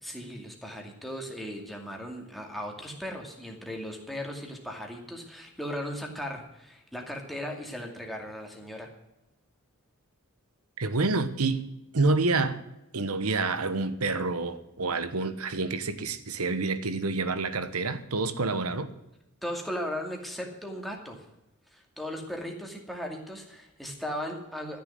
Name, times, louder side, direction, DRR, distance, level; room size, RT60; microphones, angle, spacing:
voice 1, 0.0-8.9 19.4-21.3 21.7-24.8, equal, ahead, 1 dB, 2.4 m, -37 dB
voice 2, 10.8-11.7 11.9-12.6 12.9-18.9, right 3 dB, 90° right, 11 dB, 1.2 m, -28 dB
13.5 x 6.9 x 9.2 m, 0.92 s
head